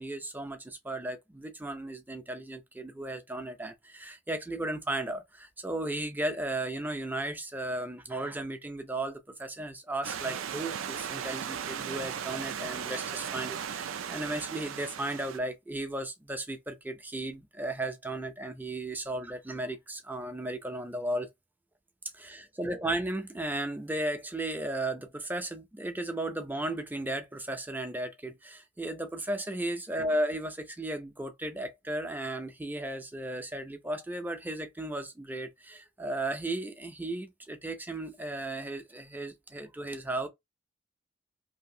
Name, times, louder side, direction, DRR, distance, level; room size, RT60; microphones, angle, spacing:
voice 1, 0.0-21.3 22.1-40.3, right 1 dB, 10° right, 0.4 m, -35 dB
Stream / Liquid, 10.0-15.4, right 8 dB, 85° right, 0.4 m, -37 dB
2.7 x 2.6 x 2.7 m
head